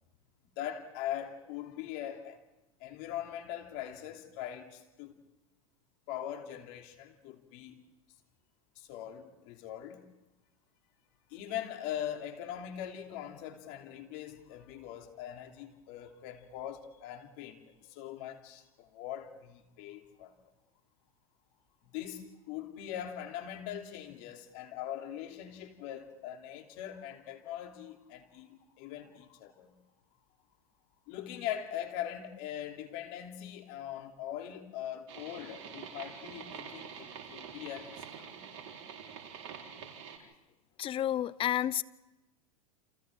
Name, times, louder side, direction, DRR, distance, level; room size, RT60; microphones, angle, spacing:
voice 1, 0.6-2.4 2.8-5.2 6.1-7.8 8.7-10.1 11.3-20.3 21.8-29.7 31.1-38.4, left 11 dB, 55° left, 3.1 m, -41 dB
sound 1, 35.1-40.2, right 7 dB, 55° right, 4.3 m, -46 dB
voice 2, 40.8-41.8, left 11 dB, 30° left, 0.7 m, -30 dB
29.5 x 27.5 x 3.8 m
hypercardioid pair, 105°, 18 cm